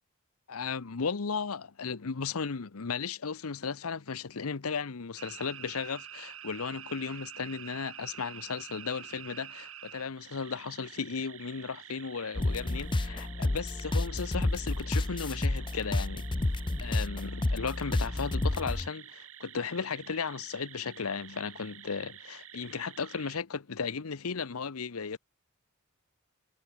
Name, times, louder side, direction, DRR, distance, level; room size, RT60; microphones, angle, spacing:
voice 1, 0.5-16.3 16.8-25.2, left 5 dB, 90° left, 0.8 m, -35 dB
sound 1, 5.2-23.4, right 10 dB, 70° right, 4.8 m, -48 dB
sound 2, 12.4-18.9, left 2 dB, 25° left, 0.6 m, -30 dB
head